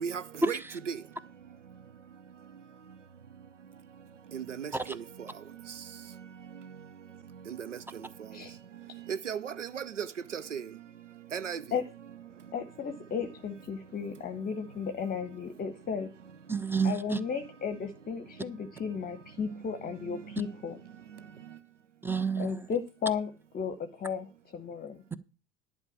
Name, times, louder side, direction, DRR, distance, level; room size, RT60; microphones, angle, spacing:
voice 1, 0.0-0.6 0.9-1.0 4.3-5.0 7.5-7.8 9.1-10.1 10.3-10.6 11.3-11.6, right 7 dB, 90° right, 0.5 m, -35 dB
voice 2, 12.5-16.1 16.8-20.8 22.4-25.0, left 6 dB, 25° left, 0.9 m, -34 dB
voice 3, 16.5-17.2 22.0-22.6, right 6 dB, 5° right, 0.6 m, -29 dB
11.0 x 4.8 x 8.1 m
figure-of-eight pair, 70°, 36 cm